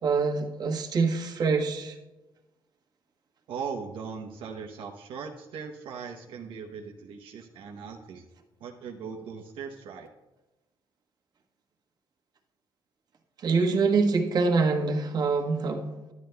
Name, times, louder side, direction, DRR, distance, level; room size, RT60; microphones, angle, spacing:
voice 1, 0.0-2.0 13.4-16.1, right 4 dB, 50° right, 2 dB, 1.2 m, -25 dB
voice 2, 3.5-8.3 8.6-10.1, right 6 dB, 85° right, 2 dB, 0.8 m, -39 dB
12.0 x 10.5 x 2.2 m, 1.1 s
cardioid pair, 135°, 9 cm